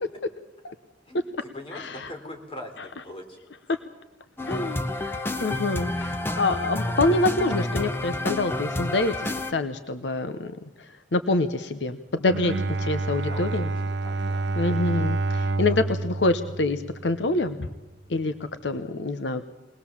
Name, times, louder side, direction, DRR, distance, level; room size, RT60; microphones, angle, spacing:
voice 1, 1.1-3.4 13.1-14.5 15.5-15.8, left 1 dB, 30° left, 3 dB, 3.4 m, -42 dB
sound 1, 4.4-9.5, left 1 dB, 15° left, 1.0 m, -29 dB
voice 2, 4.5-12.5 12.8-13.7 14.6-17.7 18.1-18.3 18.6-19.4, left 2 dB, 75° left, 10 dB, 0.9 m, -26 dB
Bowed string instrument, 12.2-17.5, right 2 dB, 75° right, 0.7 m, -28 dB
22.0 x 19.5 x 7.3 m, 1.0 s
head